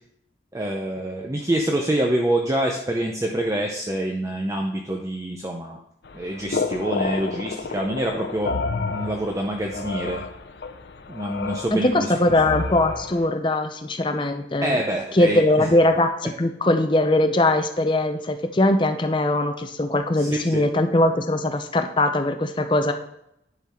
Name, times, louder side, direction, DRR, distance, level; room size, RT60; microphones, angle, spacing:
voice 1, 0.5-5.8 6.1-8.5 8.8-10.2 11.1-12.1 14.6-15.7 20.2-20.7, right 1 dB, 15° right, 1 dB, 0.6 m, -26 dB
sound 1, 6.0-13.3, left 4 dB, 70° left, 0.6 m, -30 dB
voice 2, 11.7-14.8 15.1-22.9, left 1 dB, 25° left, 6 dB, 0.6 m, -21 dB
10.5 x 4.0 x 4.3 m, 0.80 s
head